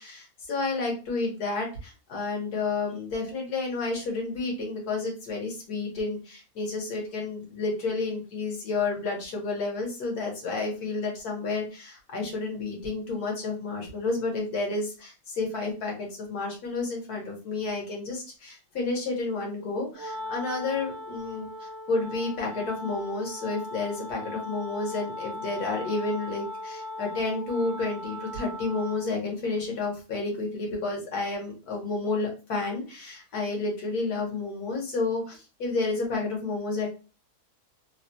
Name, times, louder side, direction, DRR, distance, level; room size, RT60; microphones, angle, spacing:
voice 1, 0.0-21.5 21.9-36.9, left 3 dB, 85° left, -1 dB, 1.6 m, -31 dB
Wind instrument woodwind instrument, 19.9-29.2, left 1 dB, 70° right, 0.8 m, -38 dB
3.4 x 2.2 x 2.7 m, 0.33 s
omnidirectional pair, 1.6 m